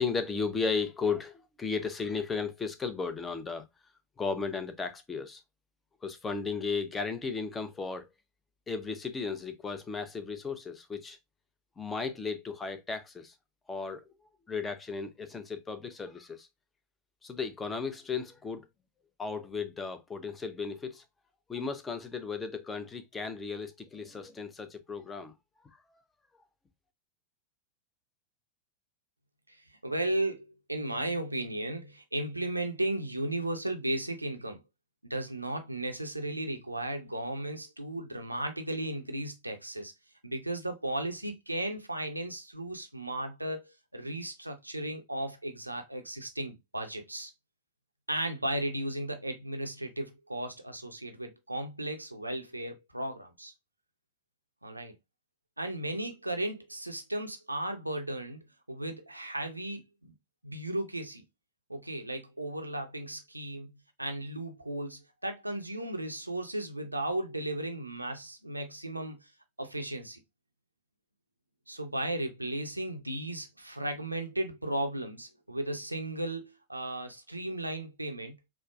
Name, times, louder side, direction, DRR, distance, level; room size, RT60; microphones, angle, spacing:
voice 1, 0.0-3.6 4.2-5.4 6.0-8.1 8.7-11.2 11.8-13.3 13.7-14.0 14.5-16.5 17.2-18.7 19.2-21.0 21.5-25.3, left 5 dB, 15° left, 0.5 m, -35 dB
voice 2, 29.8-34.6 35.0-39.9 40.2-47.3 48.1-53.5 54.6-55.0 55.6-60.1 60.4-61.2 61.7-63.7 64.0-69.3 69.6-70.2 71.7-78.5, right 1 dB, 85° right, 0.5 m, -35 dB
4.4 x 2.0 x 2.3 m
figure-of-eight pair, 90°, 0 cm